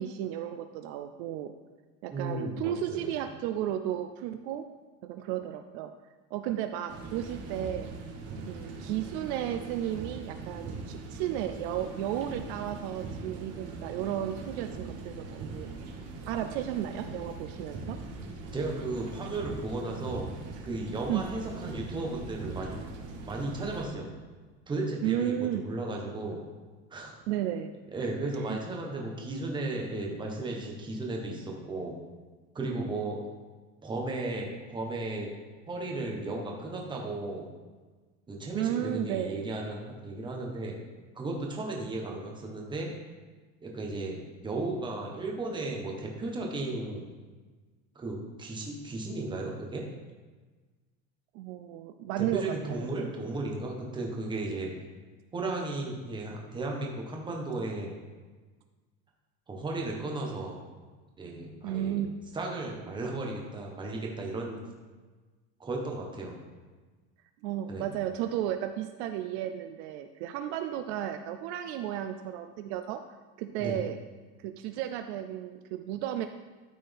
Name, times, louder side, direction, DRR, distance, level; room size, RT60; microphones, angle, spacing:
voice 1, 0.0-1.5 2.0-4.7 5.0-5.9 6.3-7.9 8.5-15.7 16.3-18.0 21.1-21.3 25.0-25.7 27.3-27.7 28.5-28.6 38.5-39.5 51.3-53.1 61.6-62.2 67.4-73.0 73.4-74.0 74.4-76.3, right 11 dB, 60° right, 8 dB, 0.5 m, -33 dB
voice 2, 2.1-3.1 18.5-20.3 20.6-22.8 23.2-24.2 24.7-26.4 26.9-27.1 27.9-31.9 32.5-33.2 33.8-35.3 35.7-37.5 38.3-40.7 41.1-42.9 43.6-44.2 44.4-47.1 47.9-49.8 52.2-54.7 55.3-57.9 59.5-60.6 61.2-62.0 62.3-64.6 65.6-66.4 67.7-67.9 73.6-73.8, right 2 dB, 15° right, 0 dB, 1.1 m, -35 dB
sound 1, 6.9-23.8, right 3 dB, 45° right, 1.3 m, -41 dB
12.5 x 4.3 x 3.5 m, 1.3 s
cardioid pair, 160°, 37 cm